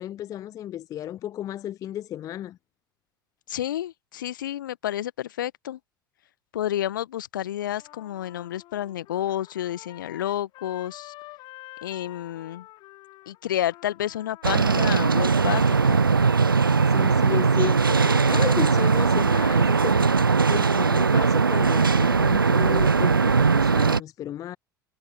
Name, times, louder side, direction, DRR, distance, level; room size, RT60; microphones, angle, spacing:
voice 1, 0.0-2.6 16.9-20.0 20.3-24.6, left 12 dB, 30° left, 0.4 m, -33 dB
voice 2, 3.5-5.8 6.5-11.1 11.8-12.6 13.3-16.0, left 12 dB, 70° left, 1.3 m, -30 dB
Trumpet, 7.6-15.3, left 18 dB, 45° left, 4.6 m, -48 dB
sound 1, 14.4-24.0, right 5 dB, 85° right, 0.4 m, -20 dB
figure-of-eight pair, 70°, 11 cm